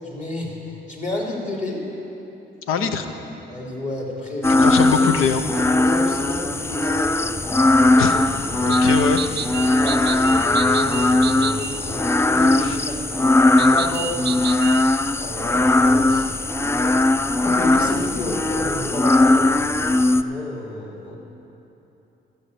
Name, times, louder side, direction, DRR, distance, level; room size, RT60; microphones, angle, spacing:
voice 1, 0.0-1.8 2.8-2.9 3.5-4.7 5.8-7.2 7.7-8.2 9.7-14.4 15.2-16.2 16.7-17.0 17.4-19.6 20.1-21.2, left 1 dB, 35° left, -2 dB, 3.1 m, -30 dB
voice 2, 2.7-3.0 4.5-5.4 8.0-8.1 8.6-9.6 12.6-12.8, left 6 dB, 90° left, 8 dB, 0.7 m, -23 dB
sound 1, 4.4-20.2, left 2 dB, 15° left, 0.3 m, -19 dB
sound 2, 8.7-11.8 13.6-14.8, right 10 dB, 60° right, 0.5 m, -32 dB
13.5 x 5.6 x 8.1 m, 3.0 s
cardioid pair, 65°, 20 cm